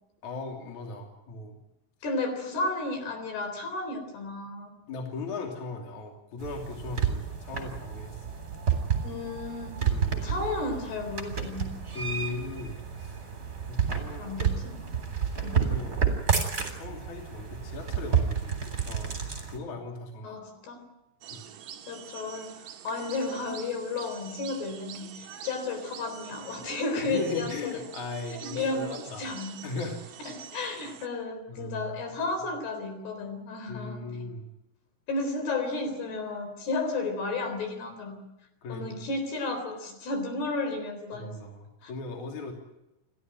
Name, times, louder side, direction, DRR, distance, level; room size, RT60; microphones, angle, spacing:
voice 1, 0.2-1.6 4.9-8.3 9.9-10.3 11.9-13.2 13.7-14.4 15.3-16.0 16.7-20.4 21.3-21.5 27.0-29.3 29.6-30.0 31.5-32.0 33.7-34.5 38.6-39.1 41.1-42.5, left 3 dB, 45° left, 2 dB, 4.0 m, -38 dB
voice 2, 2.0-4.8 9.0-11.7 12.2-12.3 14.2-14.9 15.4-15.7 20.2-20.9 21.9-27.5 28.4-29.6 30.3-34.3 35.1-38.3 38.7-41.4 41.8-41.9, left 3 dB, 65° left, 6 dB, 5.8 m, -33 dB
sound 1, 6.4-19.6, right 7 dB, 20° right, 3.6 m, -30 dB
sound 2, 21.2-31.1, right 10 dB, 70° right, 1.7 m, -46 dB
29.5 x 14.0 x 9.2 m, 0.93 s
omnidirectional pair, 5.2 m